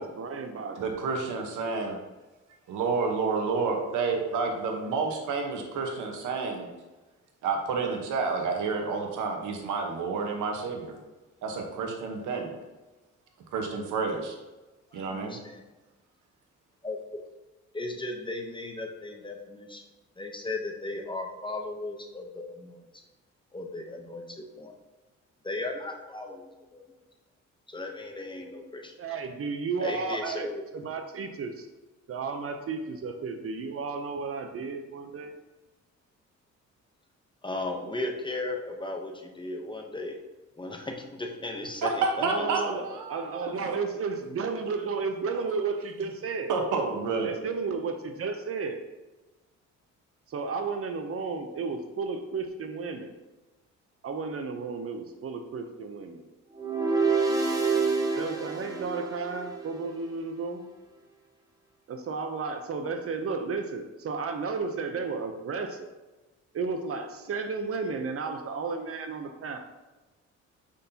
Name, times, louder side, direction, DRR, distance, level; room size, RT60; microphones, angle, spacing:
voice 1, 0.0-0.9 29.0-31.7 32.1-35.3 42.2-46.5 47.2-48.8 50.3-53.1 54.0-56.2 58.1-60.7 61.9-65.9 66.5-69.7, right 4 dB, 50° right, 6 dB, 0.7 m, -33 dB
voice 2, 0.8-2.0 2.7-6.7 7.4-10.9 11.4-12.5 13.5-14.3 14.9-15.4 41.8-43.5 46.5-47.3, right 4 dB, 80° right, 3 dB, 1.2 m, -29 dB
voice 3, 14.9-15.6 16.8-17.2 17.7-19.8 20.2-22.8 23.5-24.7 25.4-26.8 27.7-28.9 29.8-30.6 37.4-40.2 40.6-43.0, left 2 dB, 15° left, 2 dB, 0.8 m, -36 dB
sound 1, 56.5-59.8, right 4 dB, 10° right, 1.1 m, -27 dB
6.3 x 5.6 x 2.8 m, 1.1 s
cardioid pair, 90°, 30 cm